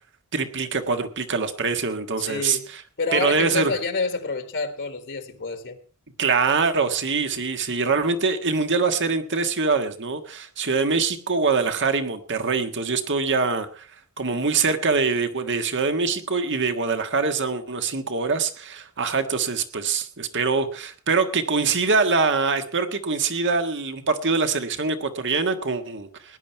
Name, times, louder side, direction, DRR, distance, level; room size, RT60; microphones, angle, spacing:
voice 1, 0.3-2.8 3.1-3.7 6.2-13.9 14.2-26.4, right 4 dB, 55° right, 1.6 m, -24 dB
voice 2, 2.3-2.7 3.0-5.8, left 4 dB, 55° left, 1.7 m, -28 dB
18.5 x 10.5 x 4.6 m
head